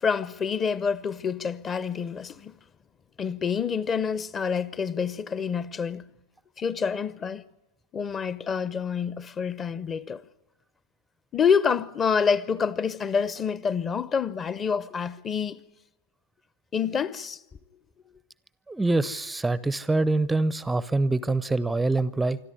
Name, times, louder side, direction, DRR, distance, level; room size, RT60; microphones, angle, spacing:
voice 1, 0.0-2.5 3.2-6.0 6.6-7.4 7.9-10.2 11.3-15.6 16.7-17.4, left 6 dB, 25° left, 0.9 m, -27 dB
voice 2, 18.7-22.4, right 2 dB, 10° right, 0.7 m, -25 dB
26.5 x 13.0 x 9.9 m
figure-of-eight pair, 95°, 0 cm